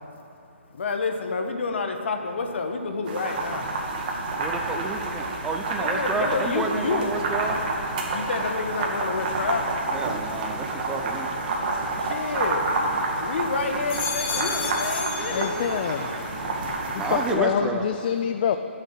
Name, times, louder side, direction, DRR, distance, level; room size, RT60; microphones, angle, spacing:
voice 1, 0.7-4.6 5.1-5.5 5.8-7.1 8.1-10.9 12.0-12.7 13.2-15.7, left 4 dB, 65° left, 5 dB, 1.5 m, -30 dB
sound 1, 3.1-17.3, right 2 dB, 45° right, 2.3 m, -29 dB
voice 2, 4.4-7.6 9.9-11.3 17.0-17.8, right 4 dB, 10° right, 4 dB, 0.6 m, -30 dB
sound 2, 12.1-13.2 13.7-16.1 16.5-17.1, left 5 dB, 20° left, 1.0 m, -34 dB
voice 3, 15.3-18.6, left 8 dB, 40° left, 8 dB, 0.5 m, -27 dB
16.5 x 7.4 x 5.8 m, 2.7 s
hypercardioid pair, 145°, 7 cm